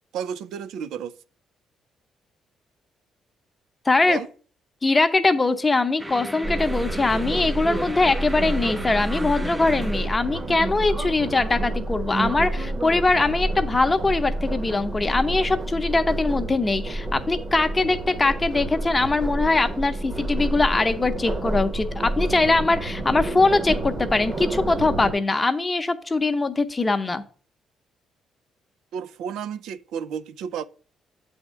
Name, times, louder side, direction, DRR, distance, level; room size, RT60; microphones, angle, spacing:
voice 1, 0.1-1.1 4.1-4.3 28.9-30.6, right 8 dB, 85° right, 0.4 m, -32 dB
voice 2, 3.9-4.2 4.8-27.2, left 3 dB, 25° left, 0.7 m, -22 dB
sound 1, 6.0-12.4, right 1 dB, 10° right, 0.5 m, -38 dB
sound 2, 6.4-25.1, right 2 dB, 35° right, 1.0 m, -29 dB
8.1 x 3.5 x 6.3 m
cardioid pair, 90°, 0 cm